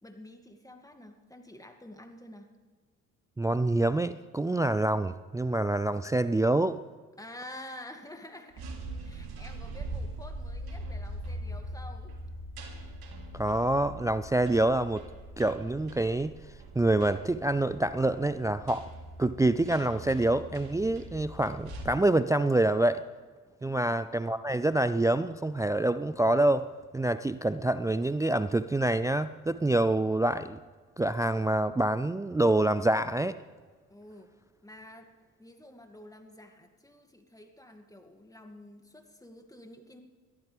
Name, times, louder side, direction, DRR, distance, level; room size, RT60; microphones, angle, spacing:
voice 1, 0.0-2.5 7.2-8.7 9.0-12.2 23.6-23.9 33.9-34.3 34.6-35.1 35.4-40.0, left 1 dB, 10° left, 5 dB, 2.3 m, -49 dB
voice 2, 3.4-6.8 13.3-15.0 15.4-16.3 16.8-18.9 19.2-23.1 23.6-30.6 31.0-33.4, right 2 dB, 10° right, 14 dB, 0.4 m, -26 dB
sound 1, 8.5-21.8, right 1 dB, 60° right, 3.2 m, -42 dB
22.0 x 14.5 x 3.5 m, 1.5 s
hypercardioid pair, 55°, 43 cm